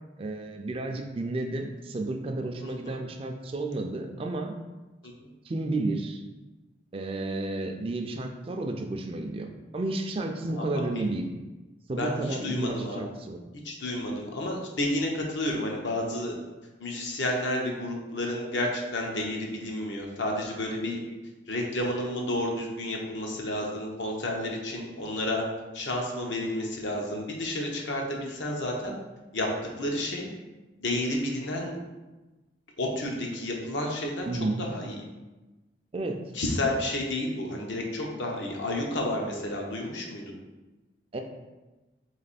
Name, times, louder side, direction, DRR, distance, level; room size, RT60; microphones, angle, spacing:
voice 1, 0.2-4.5 5.4-6.2 6.9-11.2 11.9-13.4 34.3-34.6 35.9-36.2 41.1-41.2, right 2 dB, 30° right, 4 dB, 0.3 m, -32 dB
voice 2, 2.6-3.0 10.5-11.0 12.0-13.0 13.6-16.3 16.8-21.0 21.5-25.4 25.7-28.9 29.3-29.5 29.8-30.3 30.8-31.8 32.8-34.3 34.6-35.0 36.3-40.4, left 1 dB, 80° left, 0 dB, 0.8 m, -31 dB
3.4 x 3.2 x 4.1 m, 1.1 s
head